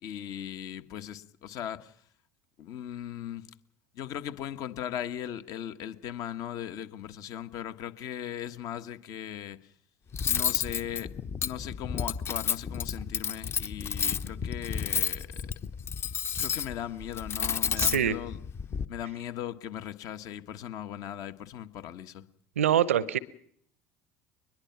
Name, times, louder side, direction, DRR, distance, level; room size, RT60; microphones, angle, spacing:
voice 1, 0.0-2.0 2.6-3.6 3.9-9.7 10.3-11.1 11.4-15.5 16.4-18.4 18.9-22.2, left 10 dB, 55° left, 1.5 m, -38 dB
Cutlery silverware, 10.1-18.8, left 7 dB, 35° left, 1.1 m, -31 dB
voice 2, 17.8-18.2 22.6-23.2, right 9 dB, 80° right, 0.8 m, -24 dB
22.5 x 21.0 x 5.9 m
figure-of-eight pair, 65°, 7 cm